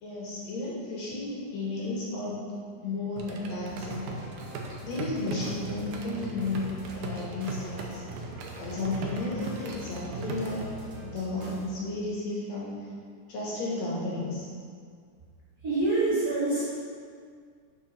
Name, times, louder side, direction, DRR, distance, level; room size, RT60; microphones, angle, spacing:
voice 1, 0.0-2.5 2.8-4.2 4.8-8.0 8.6-10.7 11.0-12.7 13.3-14.5, left 2 dB, 65° left, -6 dB, 2.8 m, -33 dB
sound 1, 3.2-10.7, right 3 dB, 85° right, 2.3 m, -39 dB
sound 2, 3.7-11.7, right 2 dB, 55° right, 1.3 m, -44 dB
voice 2, 15.6-16.7, right 2 dB, 35° right, -11 dB, 2.6 m, -25 dB
6.3 x 6.1 x 5.7 m, 2.1 s
omnidirectional pair, 3.4 m